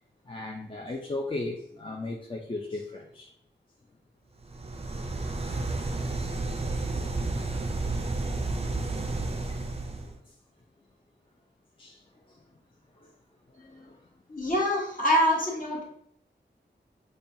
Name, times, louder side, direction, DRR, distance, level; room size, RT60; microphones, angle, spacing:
voice 1, 0.3-3.3 7.0-7.1 9.5-10.4 11.8-12.0 12.3-12.4 12.9-13.1 13.5-14.0, left 2 dB, 30° left, 0 dB, 0.4 m, -37 dB
sound 1, 4.4-10.2, right 2 dB, 35° right, 0.4 m, -31 dB
voice 2, 14.3-15.8, equal, 45° left, -3 dB, 1.3 m, -25 dB
5.3 x 2.3 x 2.6 m, 0.72 s
wide cardioid pair, 45°, 19 cm